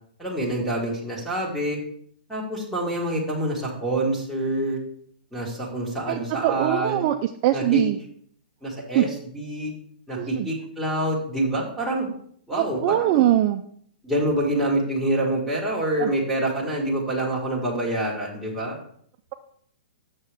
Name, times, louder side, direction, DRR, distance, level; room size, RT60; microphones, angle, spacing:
voice 1, 0.2-1.8 2.3-4.8 5.3-7.0 7.5-7.8 8.6-9.1 9.3-9.7 10.1-12.1 12.5-13.3 14.0-18.8, right 1 dB, ahead, -3 dB, 1.6 m, -26 dB
voice 2, 6.1-8.0 8.9-9.1 10.2-10.5 12.5-13.6 16.0-16.1, right 13 dB, 30° right, 6 dB, 0.3 m, -22 dB
6.9 x 6.5 x 3.4 m, 0.63 s
hypercardioid pair, 160°, 5 cm